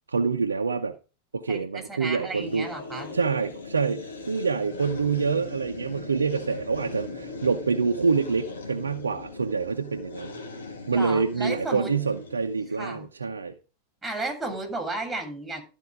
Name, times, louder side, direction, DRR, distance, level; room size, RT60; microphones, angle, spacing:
voice 1, 0.1-0.9 1.3-2.7 3.1-10.4 10.9-13.5, right 5 dB, 75° right, 0.7 m, -26 dB
voice 2, 1.5-3.1 10.9-11.9 12.8-13.0 14.0-15.6, right 2 dB, 5° right, 2.9 m, -33 dB
sound 1, 2.4-12.9, left 3 dB, 70° left, 1.8 m, -40 dB
13.0 x 4.5 x 6.1 m
figure-of-eight pair, 90°, 0 cm